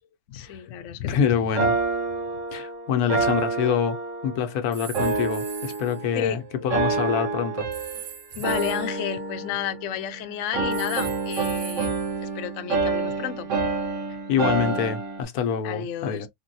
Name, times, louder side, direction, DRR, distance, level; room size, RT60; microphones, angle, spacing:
voice 1, 0.3-1.3 6.1-6.4 8.3-11.9 12.2-13.7 15.6-16.3, left 10 dB, 65° left, 0.8 m, -32 dB
voice 2, 1.1-1.7 2.5-4.0 4.2-7.7 14.3-16.3, left 7 dB, 85° left, 1.1 m, -26 dB
sound 1, 1.6-4.5 4.9-6.3 6.7-8.1 8.4-10.2 10.5-15.2, right 3 dB, 60° right, 1.2 m, -28 dB
sound 2, 4.7-6.0 7.7-10.2 10.7-13.0, right 8 dB, 80° right, 1.8 m, -42 dB
3.8 x 2.1 x 2.6 m
omnidirectional pair, 1.6 m